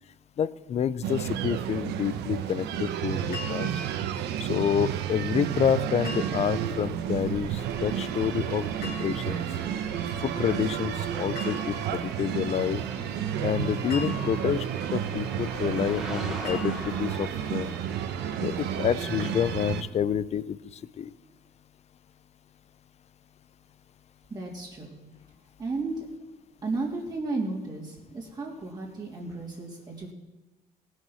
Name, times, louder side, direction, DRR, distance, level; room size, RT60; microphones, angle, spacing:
voice 1, 0.4-3.7 4.4-9.5 10.2-12.8 13.4-14.7 14.9-17.7 18.4-21.1, left 8 dB, 40° left, 18 dB, 0.5 m, -28 dB
sound 1, 1.0-19.8, right 10 dB, 80° right, 0.9 m, -31 dB
sound 2, 3.3-4.0 6.0-6.8 8.8-9.5 11.4-12.0 13.9-14.8 16.5-17.2, left 5 dB, 60° left, 3.3 m, -41 dB
sound 3, 7.6-19.7, equal, 5° right, 2.5 m, -43 dB
voice 2, 24.3-24.9 25.6-25.9 26.6-30.1, right 3 dB, 25° right, -4 dB, 2.9 m, -33 dB
17.0 x 6.5 x 6.3 m, 1.1 s
cardioid pair, 110°, 17 cm